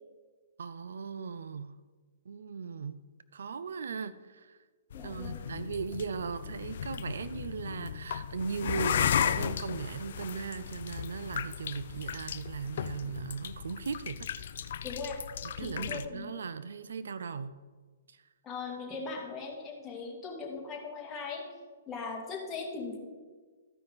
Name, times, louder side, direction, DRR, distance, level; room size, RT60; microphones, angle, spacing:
voice 1, 0.6-1.8 2.3-3.0 3.3-4.6 5.0-14.3 15.5-17.6, right 5 dB, 80° right, 14 dB, 0.5 m, -38 dB
sound 1, 4.9-16.0, left 8 dB, 65° left, 0.5 m, -35 dB
voice 2, 4.9-5.4 14.8-15.2 15.6-16.4 18.4-21.4 21.9-23.0, left 4 dB, 15° left, -2 dB, 2.1 m, -39 dB
14.5 x 5.3 x 4.0 m, 1.4 s
hypercardioid pair, 145°, 0 cm